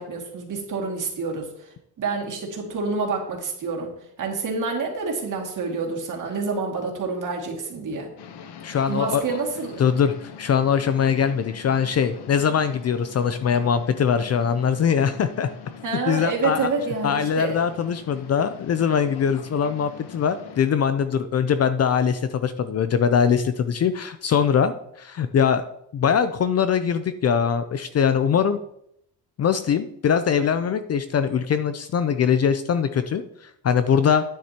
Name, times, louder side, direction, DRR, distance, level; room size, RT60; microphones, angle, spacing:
voice 1, 0.0-8.1 8.9-9.8 15.8-17.6, right 4 dB, 50° right, 0 dB, 2.3 m, -28 dB
sound 1, 8.2-20.6, left 7 dB, 75° left, 1.0 m, -43 dB
voice 2, 8.6-9.4 9.8-15.5 16.1-16.7 17.0-25.6 25.9-28.6 29.4-34.2, left 7 dB, 40° left, 11 dB, 0.4 m, -22 dB
11.5 x 9.5 x 2.9 m, 0.76 s
cardioid pair, 155°, 40 cm